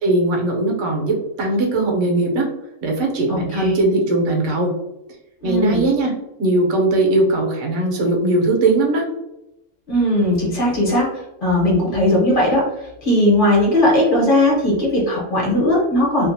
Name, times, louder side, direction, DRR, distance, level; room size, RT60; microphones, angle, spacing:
voice 1, 0.0-2.5 2.8-4.7 5.4-6.1 6.4-9.0, right 2 dB, 70° right, 0 dB, 1.0 m, -19 dB
voice 2, 3.3-3.7 5.4-5.8 9.9-11.1 11.4-12.6 13.0-16.3, left 1 dB, 40° left, -4 dB, 1.1 m, -17 dB
2.8 x 2.4 x 2.6 m, 0.90 s
omnidirectional pair, 1.4 m